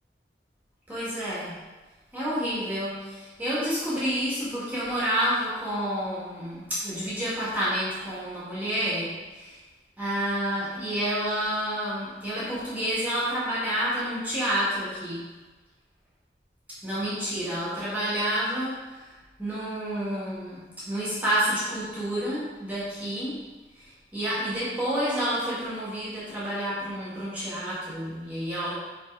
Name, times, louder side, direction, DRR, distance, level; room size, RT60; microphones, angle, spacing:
voice 1, 0.9-1.5 2.1-9.6 10.0-15.2 16.8-19.1 19.4-20.6 20.9-23.4 23.8-28.7, equal, 10° right, -10 dB, 2.0 m, -29 dB
5.9 x 4.6 x 4.7 m, 1.2 s
head